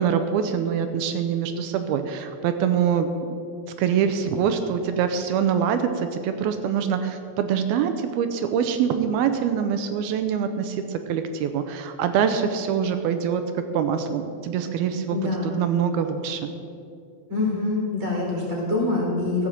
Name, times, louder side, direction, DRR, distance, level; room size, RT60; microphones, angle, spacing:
voice 1, 0.0-3.1 3.8-13.4 13.7-16.5, right 7 dB, 80° right, 8 dB, 2.4 m, -24 dB
voice 2, 15.1-15.6 17.3-19.5, left 3 dB, 15° right, -4 dB, 3.2 m, -25 dB
15.0 x 6.2 x 7.2 m, 2.6 s
omnidirectional pair, 4.6 m